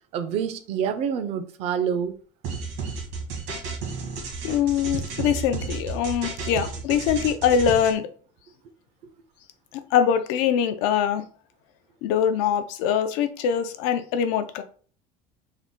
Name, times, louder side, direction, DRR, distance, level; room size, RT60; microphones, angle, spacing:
voice 1, 0.1-2.1, right 7 dB, 45° right, 0.4 m, -27 dB
sound 1, 2.4-7.9, right 5 dB, 80° right, 1.3 m, -32 dB
voice 2, 4.4-8.1 9.9-11.2 12.0-14.6, left 8 dB, 90° left, 0.5 m, -23 dB
3.7 x 2.2 x 3.6 m
cardioid pair, 165°, 15 cm